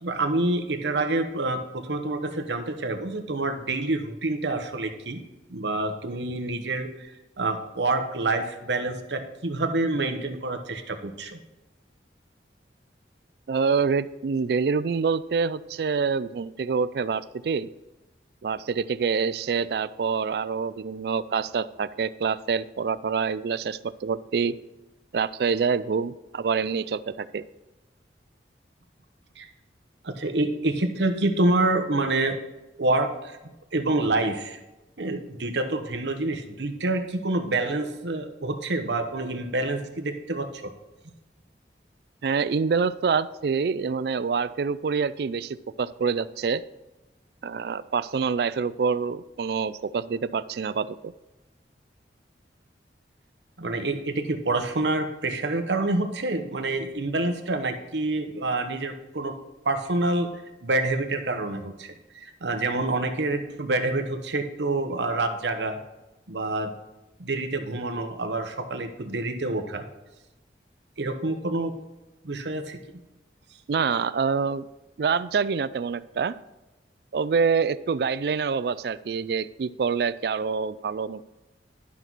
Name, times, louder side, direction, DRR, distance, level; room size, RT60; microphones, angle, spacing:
voice 1, 0.0-5.2 5.5-7.1 7.4-11.4 29.4-29.5 30.0-32.4 32.8-33.4 33.7-34.6 35.0-40.7 53.6-59.4 59.6-60.3 60.6-65.8 66.3-66.7 67.2-69.8 71.0-71.7 72.2-72.8, right 2 dB, 80° right, 6 dB, 1.0 m, -27 dB
voice 2, 13.5-17.7 18.4-24.6 25.1-27.4 42.2-46.6 47.4-51.1 73.7-74.7 75.0-76.4 77.1-81.2, right 5 dB, 60° right, 16 dB, 0.3 m, -26 dB
11.5 x 6.1 x 4.0 m, 1.0 s
head